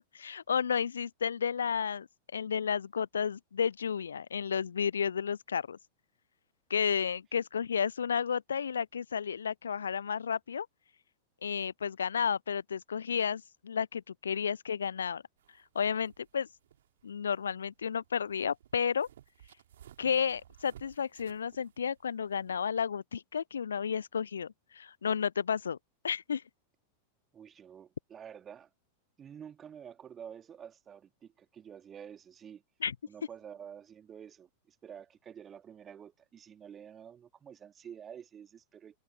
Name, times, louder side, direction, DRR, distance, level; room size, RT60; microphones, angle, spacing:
voice 1, 0.1-2.1 2.3-5.8 6.7-10.7 11.4-15.2 15.7-16.5 17.0-19.1 20.0-25.8 26.0-26.4 32.8-32.9, left 7 dB, 70° left, 0.4 m, -32 dB
sound 1, 15.4-22.6, right 11 dB, 60° right, 2.9 m, -59 dB
voice 2, 27.3-28.7 29.2-32.6 33.1-39.0, right 8 dB, 25° right, 1.6 m, -49 dB
figure-of-eight pair, 90°, 0 cm